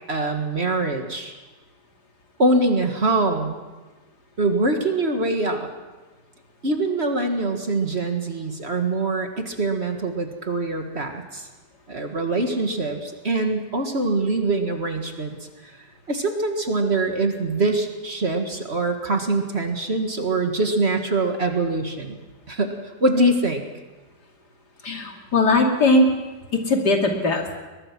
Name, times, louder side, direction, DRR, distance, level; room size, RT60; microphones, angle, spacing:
voice 1, 0.1-1.3 2.4-3.6 4.4-5.7 6.6-11.5 11.9-15.4 15.6-15.8 16.1-22.2 22.5-23.6, right 2 dB, 40° right, 4 dB, 2.0 m, -23 dB
voice 2, 24.8-26.1 26.7-27.4, left 2 dB, 70° left, 2 dB, 3.1 m, -19 dB
22.5 x 21.0 x 6.1 m, 1.2 s
omnidirectional pair, 1.8 m